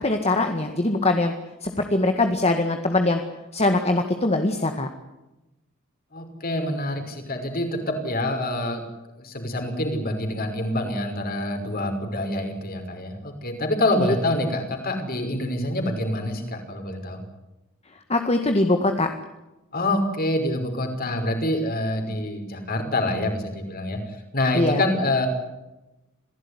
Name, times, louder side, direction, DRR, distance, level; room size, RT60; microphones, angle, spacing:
voice 1, 0.0-1.3 1.6-3.2 3.5-4.9 14.0-14.1 18.1-19.1 24.5-24.8, left 2 dB, 30° left, 5 dB, 1.9 m, -22 dB
voice 2, 6.1-8.8 9.2-17.2 19.7-24.0 24.3-25.3, left 1 dB, 45° left, 5 dB, 5.7 m, -26 dB
27.0 x 17.0 x 9.9 m, 1.0 s
head